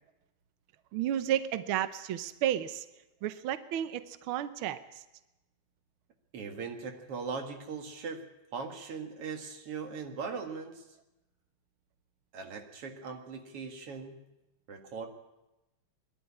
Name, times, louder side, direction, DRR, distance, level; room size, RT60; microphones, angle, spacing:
voice 1, 0.9-2.8 3.2-5.0, right 11 dB, 80° right, 12 dB, 1.1 m, -32 dB
voice 2, 6.3-10.9 12.3-14.2 14.7-15.1, right 5 dB, 55° right, 4 dB, 2.7 m, -40 dB
22.0 x 12.0 x 9.8 m, 0.97 s
omnidirectional pair, 3.4 m